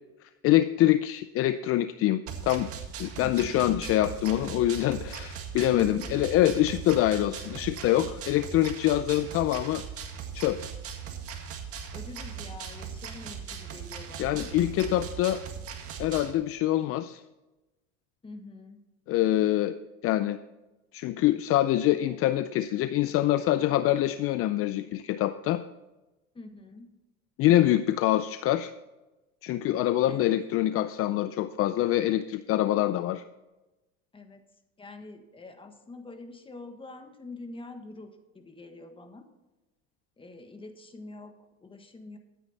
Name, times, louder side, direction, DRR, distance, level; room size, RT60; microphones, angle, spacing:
voice 1, 0.4-2.7 3.0-9.8 10.3-10.7 14.2-15.4 16.0-17.2 19.1-19.8 20.0-20.4 20.9-25.6 27.4-28.7 29.4-33.2, left 13 dB, 50° left, 13 dB, 0.5 m, -25 dB
sound 1, 2.3-16.3, right 7 dB, 50° right, 1.9 m, -39 dB
voice 2, 3.2-3.6 5.7-6.2 11.9-14.5 18.2-18.8 26.3-26.9 30.1-30.3 34.1-34.4 34.8-39.3 40.2-42.2, left 3 dB, 20° left, 7 dB, 1.4 m, -45 dB
13.0 x 9.3 x 4.2 m, 1.1 s
supercardioid pair, 110°, 29 cm